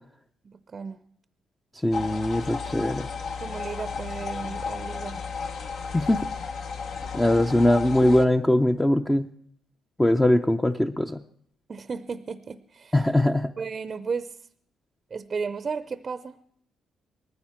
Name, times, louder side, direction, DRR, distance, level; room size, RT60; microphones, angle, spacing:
voice 1, 0.4-1.0 3.4-5.2 11.7-13.1 13.6-14.4 15.1-16.4, right 5 dB, 40° right, 13 dB, 0.6 m, -34 dB
voice 2, 1.8-3.1 5.9-6.3 7.1-9.3 10.0-11.2 12.9-13.5, left 1 dB, 10° left, 5 dB, 0.6 m, -21 dB
sound 1, 1.9-8.2, left 5 dB, 65° left, 1.1 m, -33 dB
19.5 x 14.5 x 4.4 m, 0.69 s
cardioid pair, 90°, 0 cm